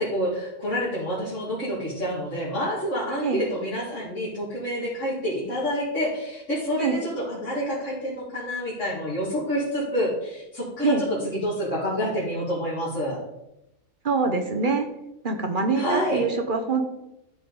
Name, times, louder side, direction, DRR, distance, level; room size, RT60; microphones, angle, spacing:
voice 1, 0.0-13.2 15.7-16.2, equal, 60° left, -8 dB, 2.7 m, -28 dB
voice 2, 14.0-14.9 15.2-16.8, right 4 dB, 45° right, 6 dB, 0.9 m, -24 dB
13.0 x 5.2 x 4.0 m, 0.88 s
omnidirectional pair, 1.4 m